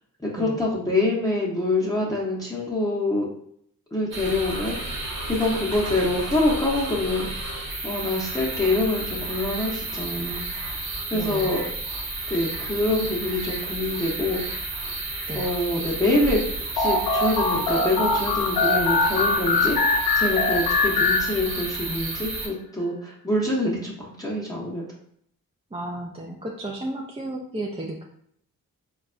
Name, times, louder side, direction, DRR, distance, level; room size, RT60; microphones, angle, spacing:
voice 1, 0.2-3.3 3.9-7.5 7.8-11.6 12.3-14.8 15.3-24.8, left 2 dB, 10° left, -5 dB, 0.7 m, -26 dB
sound 1, 4.1-22.5, right 2 dB, 85° right, 0.7 m, -32 dB
voice 2, 11.1-11.5 15.3-15.5 25.7-28.0, right 1 dB, 15° right, 0 dB, 0.4 m, -33 dB
sound 2, 16.8-21.9, left 3 dB, 85° left, 0.5 m, -23 dB
3.8 x 2.3 x 2.5 m, 0.68 s
cardioid pair, 55°, 35 cm